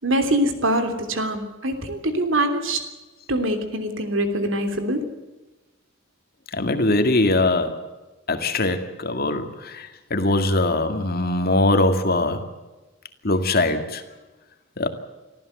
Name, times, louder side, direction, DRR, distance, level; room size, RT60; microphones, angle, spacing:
voice 1, 0.0-2.8 3.3-5.0, right 1 dB, 70° right, 3.2 m, -23 dB
voice 2, 6.5-7.9 8.3-12.5 13.2-14.0 14.8-14.9, left 2 dB, 50° left, 2.1 m, -22 dB
25.0 x 14.5 x 8.0 m
head